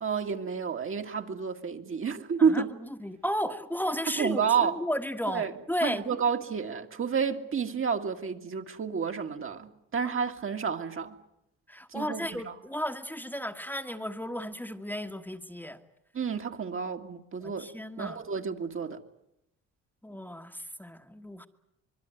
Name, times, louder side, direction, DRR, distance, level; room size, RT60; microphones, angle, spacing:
voice 1, 0.0-2.7 4.2-4.8 5.3-5.5 5.8-11.2 11.9-12.5 16.1-17.7 18.0-19.0, right 6 dB, 45° right, 2.0 m, -30 dB
voice 2, 3.0-6.2 11.7-15.8 17.4-18.2 20.0-21.5, equal, 5° left, 1.4 m, -34 dB
25.0 x 22.0 x 9.2 m
cardioid pair, 90°, 30 cm